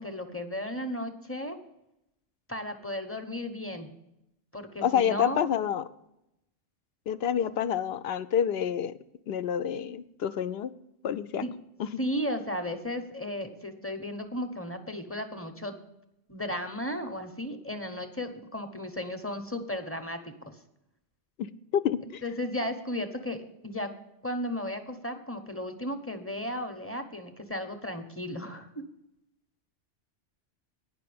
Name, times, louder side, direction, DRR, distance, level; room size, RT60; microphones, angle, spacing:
voice 1, 0.0-1.6 2.5-3.9 4.5-5.6 11.4-11.5 12.0-15.8 16.3-20.3 22.2-23.9 24.2-28.8, left 1 dB, 15° left, 7 dB, 0.8 m, -34 dB
voice 2, 4.8-5.9 7.1-9.0 9.3-10.7 11.0-11.4 11.8-12.0 21.4-21.5 21.7-22.2, left 9 dB, 65° left, 13 dB, 0.7 m, -28 dB
9.9 x 5.8 x 8.6 m, 0.83 s
omnidirectional pair, 1.2 m